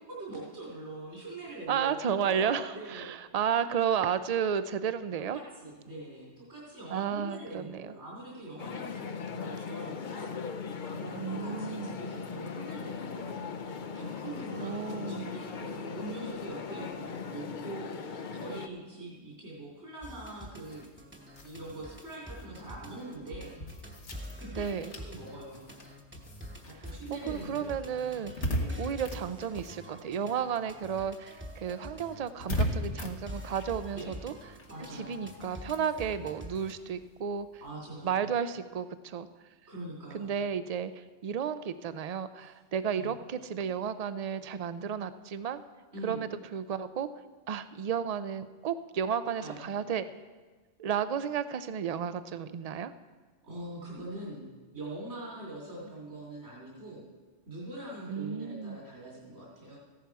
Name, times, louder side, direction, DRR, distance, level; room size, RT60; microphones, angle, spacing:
voice 1, 0.1-3.1 5.3-20.9 21.4-23.5 24.4-24.6 25.0-25.6 26.6-27.7 28.6-28.8 33.9-34.1 34.7-35.2 37.6-38.3 39.7-40.3 43.0-43.1 45.9-46.2 49.4-49.6 53.4-54.5 54.7-57.0 57.5-59.8, right 2 dB, 75° right, -5 dB, 3.4 m, -43 dB
voice 2, 1.7-5.4 6.9-7.9 11.2-12.0 14.6-15.3 24.5-24.9 27.1-28.5 28.8-34.3 34.9-37.5 38.0-39.3 40.1-45.6 46.0-47.1 47.5-50.1 50.8-52.9 58.1-58.8, right 7 dB, 50° right, 13 dB, 0.4 m, -33 dB
sound 1, 8.6-18.7, left 5 dB, 50° left, 0.7 m, -39 dB
sound 2, 20.0-36.7, equal, 10° right, 1.0 m, -46 dB
sound 3, 20.6-30.5 30.8-37.7, left 1 dB, 75° left, 1.6 m, -40 dB
15.0 x 11.0 x 4.7 m, 1.3 s
omnidirectional pair, 1.2 m